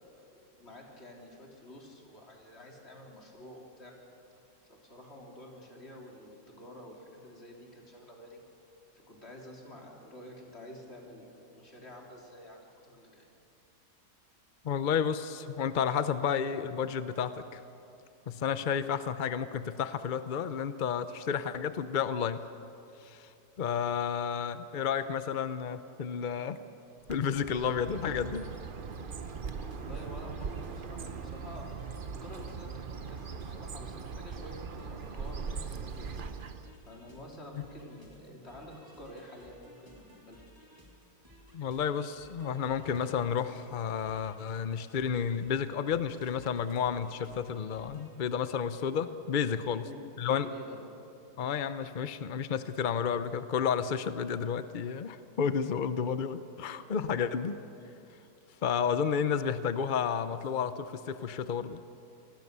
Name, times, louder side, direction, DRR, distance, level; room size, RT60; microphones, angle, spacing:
voice 1, 0.0-3.9 4.7-8.4 8.9-13.3 29.6-36.3 36.9-40.4 49.7-50.0 50.3-50.9 57.3-57.5, left 1 dB, 35° left, -1 dB, 3.8 m, -49 dB
voice 2, 14.6-17.6 18.3-22.4 23.0-23.3 23.6-26.6 27.1-28.4 37.6-37.7 41.5-49.8 50.2-50.5 51.4-57.6 58.6-61.8, left 7 dB, 60° left, 12 dB, 0.5 m, -31 dB
Bird, 27.1-36.8, right 5 dB, 40° right, 0.8 m, -40 dB
sound 1, 29.2-48.1, equal, 10° right, 3.0 m, -58 dB
27.5 x 20.0 x 6.8 m, 2.8 s
omnidirectional pair, 1.8 m